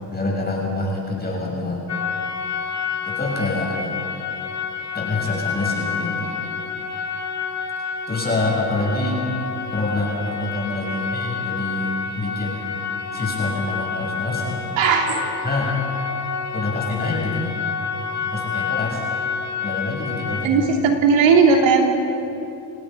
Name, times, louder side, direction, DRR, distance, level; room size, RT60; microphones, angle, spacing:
voice 1, 0.1-1.9 3.0-3.9 4.9-6.3 8.1-9.2 9.7-12.5 13.1-14.7 15.4-15.7 16.5-17.6 18.2-19.1 19.6-20.6, left 2 dB, 20° left, -3 dB, 6.8 m, -26 dB
sound 1, 1.9-20.5, left 6 dB, 35° left, 2.0 m, -29 dB
voice 2, 14.8-15.3 20.4-21.9, right 5 dB, 75° right, 2 dB, 3.1 m, -17 dB
28.5 x 18.5 x 5.2 m, 2.9 s
supercardioid pair, 80°, 45 cm